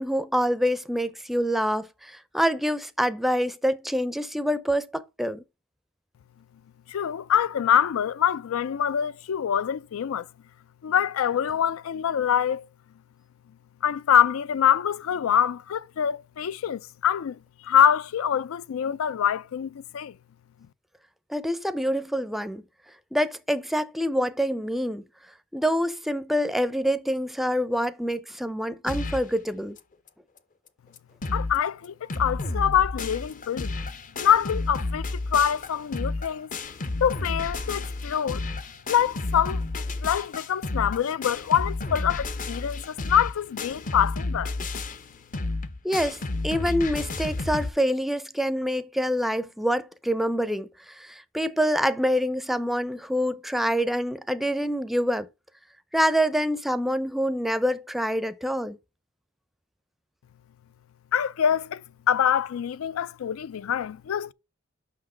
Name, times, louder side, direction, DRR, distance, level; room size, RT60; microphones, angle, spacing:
voice 1, 0.0-5.4 21.3-22.6 23.1-25.0 25.5-29.8 45.8-46.2 46.4-55.3 55.9-58.8, equal, ahead, 0.5 m, -26 dB
voice 2, 6.9-10.3 10.8-12.7 13.8-20.2 31.3-33.8 34.2-36.5 37.0-38.4 38.9-44.5 61.1-61.8 62.1-64.3, left 9 dB, 85° left, 0.4 m, -25 dB
sound 1, 28.9-29.3 29.8-29.9 30.1-30.2 30.7-30.8 31.0-31.6 31.8-47.7, left 2 dB, 40° left, 0.6 m, -31 dB
6.0 x 5.9 x 5.0 m
head